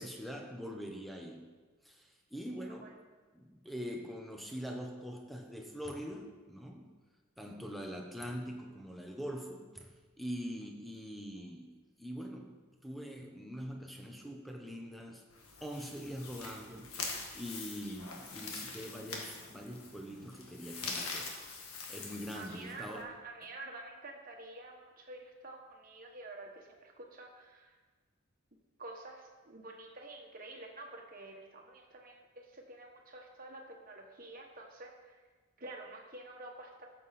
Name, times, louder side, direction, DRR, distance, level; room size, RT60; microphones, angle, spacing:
voice 1, 0.0-1.5 1.8-3.0 3.3-6.9 7.4-15.2 15.6-21.3 21.7-23.1, equal, ahead, 2 dB, 1.0 m, -43 dB
voice 2, 2.6-2.9 22.3-27.7 28.8-35.2 35.6-36.9, right 2 dB, 40° right, 1 dB, 1.5 m, -49 dB
sound 1, 15.3-23.0, left 4 dB, 85° left, 1.7 m, -44 dB
13.0 x 7.5 x 4.3 m, 1.4 s
head